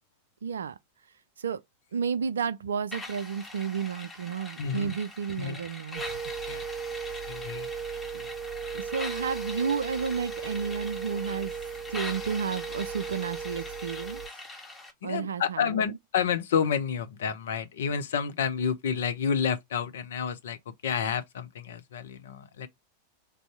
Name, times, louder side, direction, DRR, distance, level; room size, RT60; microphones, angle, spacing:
voice 1, 0.4-0.7 1.4-1.6 1.9-6.3 8.1-8.3 8.7-11.5 11.9-14.2 15.0-16.0, right 6 dB, 65° right, 0.4 m, -32 dB
sound 1, 2.9-14.9, left 2 dB, 10° left, 1.2 m, -42 dB
voice 2, 4.6-4.9 5.4-5.6 6.5-6.6 7.3-7.7 14.5-14.7 15.0-22.7, left 7 dB, 60° left, 0.6 m, -30 dB
sound 2, 6.0-14.3, right 6 dB, 15° right, 0.5 m, -37 dB
3.4 x 2.6 x 4.5 m
figure-of-eight pair, 90°, 0 cm